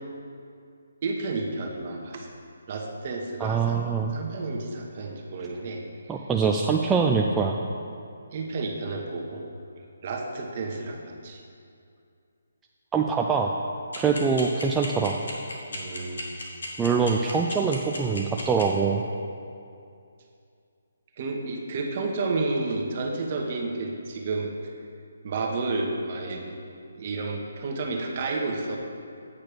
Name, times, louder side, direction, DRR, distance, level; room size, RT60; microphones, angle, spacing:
voice 1, 1.0-2.3 2.7-3.8 4.1-5.8 8.3-9.4 10.0-11.4 15.7-16.3 21.2-24.7 25.2-26.6 27.0-28.8, right 3 dB, 40° right, 1 dB, 1.1 m, -31 dB
voice 2, 3.4-4.2 6.1-7.6 12.9-13.5 14.0-15.2 16.8-19.0, right 5 dB, 10° right, 0 dB, 0.3 m, -24 dB
sound 1, 13.9-18.6, left 2 dB, 70° left, 1.6 m, -34 dB
8.5 x 4.4 x 6.7 m, 2.4 s
figure-of-eight pair, 150°, 0 cm